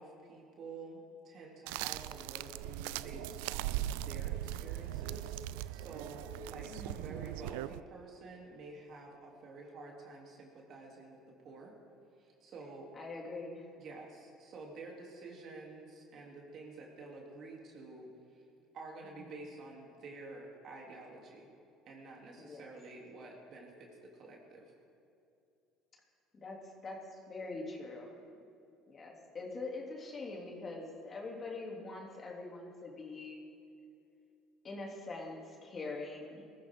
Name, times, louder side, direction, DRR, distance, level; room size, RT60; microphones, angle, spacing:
voice 1, 0.0-11.7 12.2-12.9 13.8-18.4 18.7-21.5 21.8-24.7, right 3 dB, 55° right, -1 dB, 3.5 m, -49 dB
sound 1, 1.7-7.8, right 14 dB, 80° right, 0.3 m, -39 dB
voice 2, 6.7-7.2 12.9-13.7 19.0-19.4 22.4-22.7 26.3-28.1 28.9-33.4 34.6-36.5, left 3 dB, 35° left, -1 dB, 3.3 m, -44 dB
21.0 x 14.0 x 4.0 m, 2.6 s
supercardioid pair, 75°, 0 cm